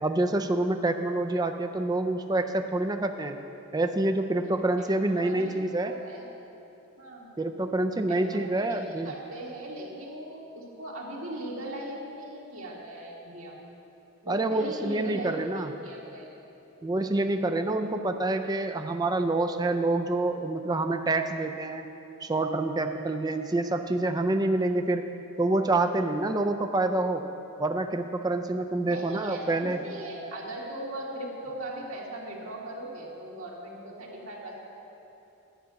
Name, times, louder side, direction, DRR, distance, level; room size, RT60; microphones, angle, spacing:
voice 1, 0.0-3.4 3.7-6.0 7.4-9.1 14.3-15.7 16.8-21.9 22.2-25.0 25.4-27.3 27.6-29.8, right 2 dB, 15° right, 6 dB, 0.4 m, -27 dB
voice 2, 4.8-6.3 7.0-7.4 8.1-13.6 14.3-16.3 28.9-34.6, right 1 dB, 70° right, -3 dB, 1.9 m, -39 dB
11.5 x 5.8 x 8.0 m, 2.9 s
head